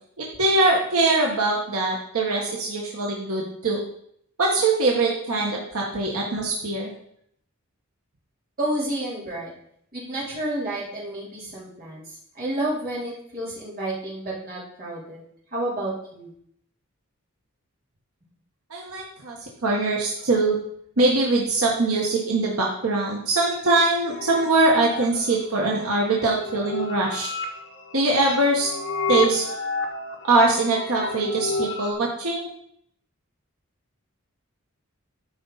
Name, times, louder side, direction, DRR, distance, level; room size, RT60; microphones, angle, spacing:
voice 1, 0.2-3.8 4.4-6.9 18.7-19.4 19.6-20.6 21.0-27.3 27.9-28.7 29.1-29.5 30.2-32.5, right 2 dB, 75° right, -2 dB, 1.5 m, -22 dB
voice 2, 8.6-9.5 9.9-12.0 12.3-15.2 15.5-16.3, right 1 dB, 40° right, -6 dB, 3.9 m, -30 dB
sound 1, 23.5-31.9, left 4 dB, 60° left, 1.5 m, -32 dB
13.0 x 5.4 x 4.2 m, 0.70 s
head